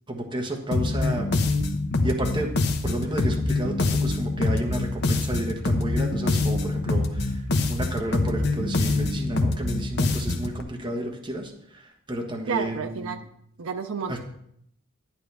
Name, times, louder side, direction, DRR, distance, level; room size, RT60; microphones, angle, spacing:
voice 1, 0.1-1.3 2.0-2.5 2.8-13.2 14.1-14.2, right 1 dB, 25° right, 1 dB, 1.2 m, -31 dB
sound 1, 0.7-10.6, left 2 dB, 55° left, 0.9 m, -25 dB
voice 2, 12.5-13.3 13.6-14.2, right 6 dB, 80° right, 7 dB, 0.5 m, -30 dB
11.5 x 9.5 x 3.4 m, 0.71 s
head